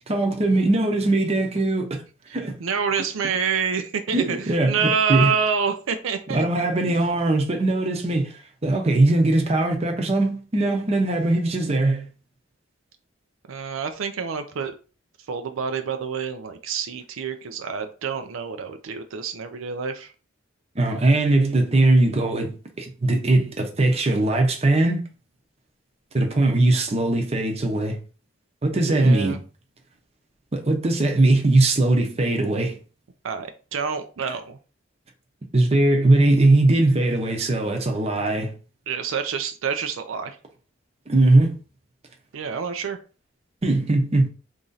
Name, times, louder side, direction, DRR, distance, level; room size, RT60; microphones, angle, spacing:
voice 1, 0.1-2.0 2.3-2.5 4.1-5.3 6.3-8.3 8.6-12.1 20.8-25.0 26.1-28.0 28.6-29.4 30.5-32.8 35.5-38.5 41.1-41.6 43.6-44.3, right 2 dB, 30° right, 0.7 m, -20 dB
voice 2, 2.6-7.0 13.5-14.7 15.3-20.1 28.9-29.4 33.2-34.6 38.9-40.4 42.3-43.0, right 6 dB, 85° right, 0.4 m, -27 dB
3.0 x 2.6 x 3.8 m
head